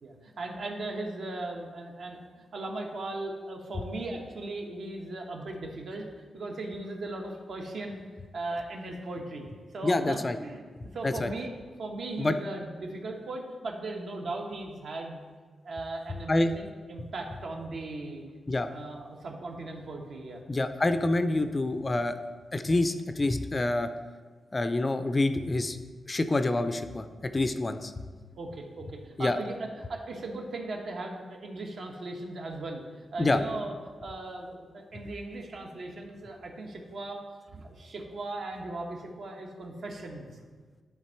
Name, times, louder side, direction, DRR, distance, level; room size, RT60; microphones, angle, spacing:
voice 1, 0.0-8.0 8.3-9.5 9.7-10.6 10.9-11.5 11.8-15.2 15.6-18.2 18.7-20.4 28.2-33.7 34.0-37.2 37.5-40.3, right 2 dB, 65° right, 1 dB, 1.1 m, -38 dB
voice 2, 9.8-10.4 11.0-11.3 12.2-12.3 16.3-16.5 18.5-18.7 20.5-22.2 22.5-23.9 24.5-25.8 26.1-27.9 29.2-29.4 33.2-33.4, left 2 dB, 25° left, 10 dB, 0.4 m, -27 dB
10.5 x 3.6 x 4.4 m, 1.5 s
wide cardioid pair, 105°, 0 cm